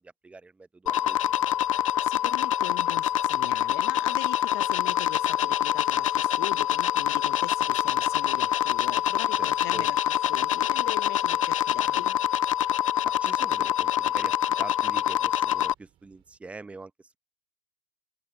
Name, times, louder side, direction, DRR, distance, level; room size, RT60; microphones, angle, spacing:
voice 1, 0.0-1.6 9.3-9.9 11.8-12.1 13.0-17.2, right 3 dB, 10° right, 0.8 m, -44 dB
sound 1, 0.9-15.7, left 11 dB, 90° left, 0.4 m, -25 dB
sound 2, 1.0-16.4, right 13 dB, 35° right, 5.6 m, -67 dB
voice 2, 2.0-10.0 10.3-12.2, left 22 dB, 50° left, 0.8 m, -40 dB
hypercardioid pair, 125°, 16 cm